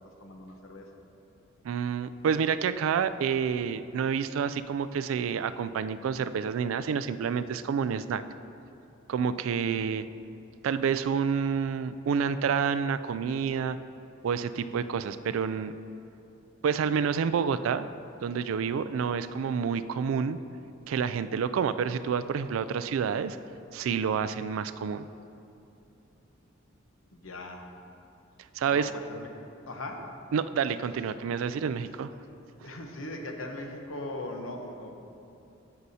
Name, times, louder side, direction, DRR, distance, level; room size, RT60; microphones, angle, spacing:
voice 1, 0.2-0.9 9.6-9.8 27.1-27.6 28.7-29.3 29.7-30.1 32.6-34.9, left 1 dB, 75° left, 3 dB, 0.9 m, -39 dB
voice 2, 1.6-8.2 9.1-10.0 10.6-13.8 14.2-15.7 16.6-17.9 18.2-20.4 20.9-23.4 23.7-25.1 28.6-28.9 30.3-32.1, right 6 dB, 80° right, 13 dB, 0.3 m, -28 dB
14.0 x 6.7 x 2.8 m, 2.9 s
head